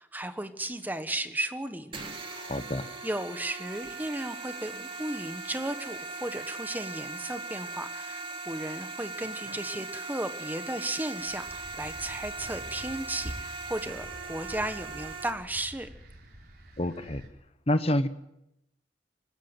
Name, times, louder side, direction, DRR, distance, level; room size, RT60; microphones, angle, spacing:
voice 1, 0.0-2.0 3.0-15.9, right 1 dB, 10° right, 9 dB, 1.3 m, -35 dB
sound 1, 1.9-15.3, right 3 dB, 30° right, 2.5 m, -39 dB
voice 2, 2.4-2.9 16.8-17.2 17.7-18.1, left 1 dB, 35° left, 12 dB, 1.0 m, -27 dB
sound 2, 11.2-17.3, equal, 60° right, 3.8 m, -46 dB
24.5 x 13.0 x 9.1 m, 0.84 s
head